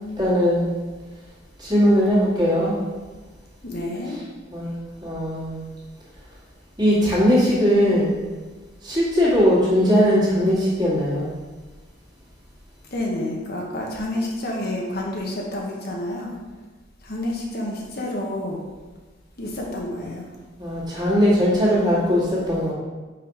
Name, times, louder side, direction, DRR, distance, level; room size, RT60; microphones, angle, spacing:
voice 1, 0.2-0.7 1.6-2.8 4.5-5.6 6.8-8.1 8.8-11.3 20.6-22.7, equal, 20° right, -8 dB, 2.3 m, -19 dB
voice 2, 3.6-4.1 12.9-16.3 17.0-18.6 19.4-20.3, left 1 dB, 50° left, -2 dB, 1.1 m, -29 dB
5.9 x 4.9 x 5.0 m, 1.3 s
head